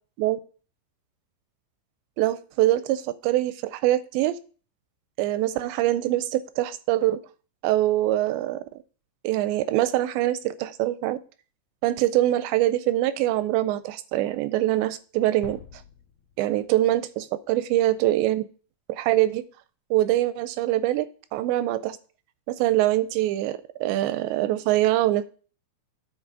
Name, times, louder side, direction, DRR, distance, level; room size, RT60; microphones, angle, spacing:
voice 1, 2.2-4.4 5.2-7.2 7.6-8.7 9.2-11.2 11.8-15.8 16.4-18.4 18.9-19.4 19.9-21.1 21.3-22.0 22.5-25.2, right 14 dB, 85° right, 14 dB, 2.5 m, -24 dB
sound 1, 15.4-17.3, left 8 dB, 75° left, 2.4 m, -47 dB
9.4 x 4.4 x 6.5 m, 0.38 s
omnidirectional pair, 5.3 m